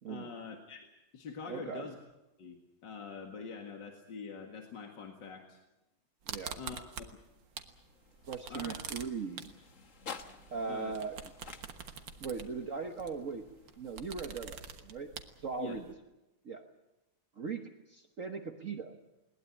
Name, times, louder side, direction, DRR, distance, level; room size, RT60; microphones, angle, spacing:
voice 1, 0.1-0.9 1.1-2.0 2.4-2.6 2.8-5.6 6.5-7.0 8.5-8.8 10.7-10.9 15.6-15.8, left 5 dB, 70° left, 3 dB, 2.5 m, -44 dB
voice 2, 1.5-1.9 6.3-6.6 8.3-9.5 10.5-11.2 12.2-13.4 13.8-15.1 15.4-15.8 16.4-16.6 17.4-18.9, right 5 dB, 45° right, 4 dB, 1.5 m, -39 dB
sound 1, 6.2-7.8 8.1-15.9, right 7 dB, 75° right, 2.1 m, -45 dB
sound 2, 7.2-15.3, left 5 dB, 45° left, 1.5 m, -53 dB
21.0 x 20.0 x 8.5 m, 0.96 s
omnidirectional pair, 2.1 m